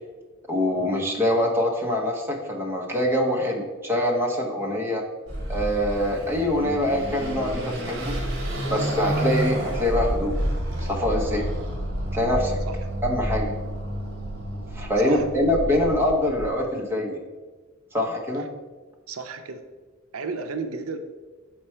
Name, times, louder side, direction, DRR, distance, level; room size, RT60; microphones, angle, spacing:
voice 1, 0.5-5.0 5.5-8.2 8.7-10.3 10.8-11.5 12.1-12.6 13.0-13.5 14.7-17.2 17.9-18.5, left 1 dB, 10° right, -1 dB, 0.8 m, -24 dB
Car passing by / Accelerating revving vroom, 5.3-16.5, equal, 55° right, 1.4 m, -29 dB
voice 2, 19.1-19.6 20.1-21.0, right 4 dB, 80° right, 7 dB, 0.5 m, -33 dB
5.8 x 4.7 x 4.3 m, 1.3 s
head